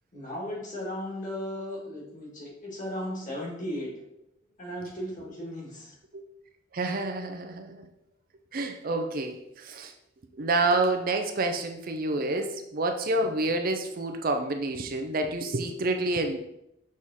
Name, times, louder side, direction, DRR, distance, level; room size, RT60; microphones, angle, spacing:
voice 1, 0.1-3.9 4.6-5.9, left 1 dB, 40° left, -3 dB, 2.1 m, -36 dB
voice 2, 6.7-7.9 8.5-9.9 10.3-16.4, right 2 dB, 50° right, 5 dB, 0.6 m, -28 dB
6.3 x 3.6 x 4.1 m, 0.81 s
head